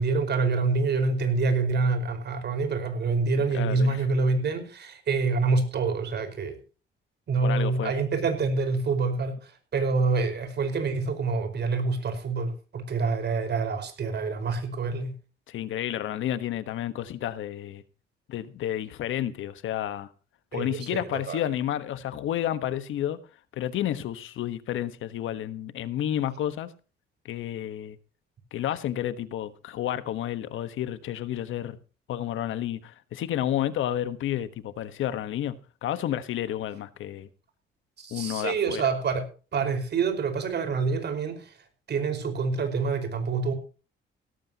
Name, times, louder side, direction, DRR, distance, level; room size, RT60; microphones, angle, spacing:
voice 1, 0.0-6.6 7.3-15.1 20.5-21.4 38.0-39.3 39.5-41.6 41.9-43.5, right 4 dB, 60° right, 5.0 m, -26 dB
voice 2, 3.5-4.0 7.4-7.9 15.5-17.8 18.3-20.1 20.5-23.2 23.6-26.7 27.2-28.0 28.5-31.8 32.1-37.3 38.1-38.9, left 11 dB, 80° left, 1.3 m, -31 dB
17.0 x 14.0 x 2.9 m
cardioid pair, 90°, 20 cm